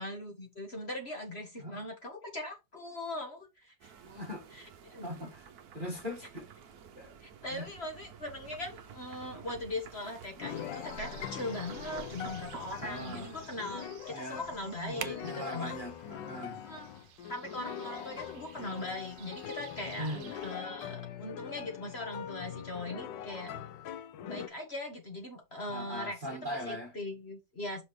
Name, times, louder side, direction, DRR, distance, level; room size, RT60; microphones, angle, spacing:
voice 1, 0.0-3.9 4.5-5.1 7.2-15.7 16.6-16.9 17.3-20.2 20.4-23.5 24.3-26.4 26.6-27.8, left 1 dB, 35° left, 1.6 m, -40 dB
sound 1, 3.8-13.5, right 7 dB, 60° right, 1.2 m, -52 dB
voice 2, 4.0-4.4 5.0-5.5 5.7-6.5 7.0-7.1 7.5-7.7 12.8-13.3 14.1-14.4 14.8-16.6 20.0-20.3 25.7-26.9, equal, 30° right, 1.4 m, -40 dB
sound 2, 10.4-24.5, left 9 dB, 75° left, 1.3 m, -43 dB
sound 3, 10.5-20.6, right 11 dB, 75° right, 1.3 m, -50 dB
6.0 x 3.8 x 4.7 m
omnidirectional pair, 2.0 m